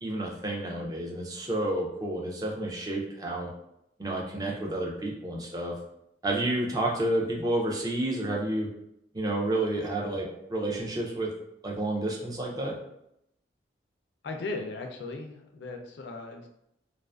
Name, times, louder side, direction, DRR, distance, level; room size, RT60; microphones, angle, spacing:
voice 1, 0.0-3.5 4.0-5.7 6.2-8.7 9.1-11.3 11.6-12.8, right 1 dB, 20° right, -2 dB, 0.3 m, -30 dB
voice 2, 14.2-16.5, left 3 dB, 65° left, 3 dB, 0.4 m, -37 dB
2.4 x 2.3 x 2.3 m, 0.79 s
head